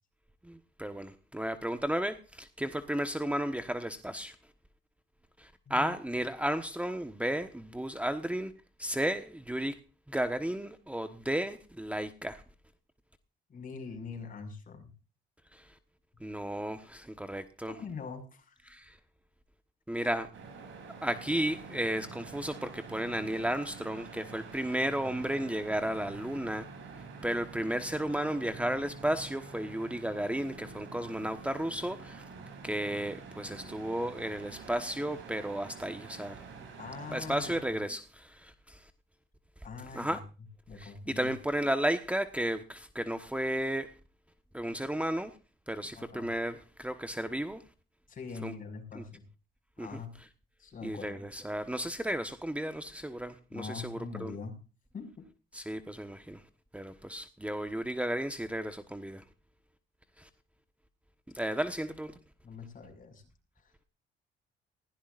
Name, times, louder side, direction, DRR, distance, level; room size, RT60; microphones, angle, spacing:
voice 1, 0.4-4.4 5.4-8.5 8.8-9.8 10.1-12.4 15.5-15.8 16.2-17.8 18.6-19.0 19.9-20.3 21.0-26.6 27.2-32.2 32.6-36.4 37.1-38.9 39.9-40.2 40.7-43.9 44.5-45.4 45.7-47.6 48.4-48.5 48.9-49.0 49.8-50.0 50.8-54.3 55.5-56.4 56.7-59.2 60.2-60.3 61.3-62.1, right 1 dB, 5° right, 1.2 m, -33 dB
voice 2, 13.5-14.9 17.7-18.6 20.0-20.1 36.8-37.5 39.6-40.2 40.7-41.3 45.9-46.3 48.1-49.2 49.8-50.1 50.6-51.2 53.5-54.5 54.9-55.3 62.4-63.2 63.6-63.7, left 5 dB, 45° left, 5.9 m, -43 dB
sound 1, 20.3-37.6, right 4 dB, 75° right, 7.1 m, -47 dB
19.5 x 16.5 x 2.5 m
cardioid pair, 90°, 20 cm